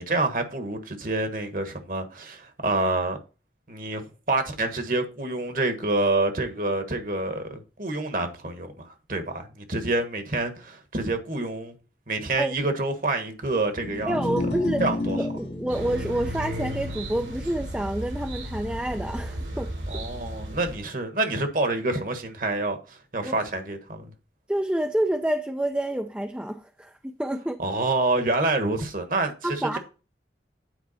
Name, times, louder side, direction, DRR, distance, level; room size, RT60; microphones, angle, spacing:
voice 1, 0.0-3.2 3.7-11.7 12.1-14.2 14.8-15.2 19.9-24.1 27.6-29.8, right 2 dB, 50° right, 1.4 m, -27 dB
sound 1, 13.7-20.1, left 2 dB, 80° left, 1.7 m, -34 dB
voice 2, 14.1-14.8 15.2-19.7 23.2-23.4 24.5-27.6 29.4-29.8, right 1 dB, 5° right, 0.4 m, -28 dB
sound 2, 15.7-20.8, equal, 80° right, 2.8 m, -34 dB
9.5 x 4.7 x 4.2 m
head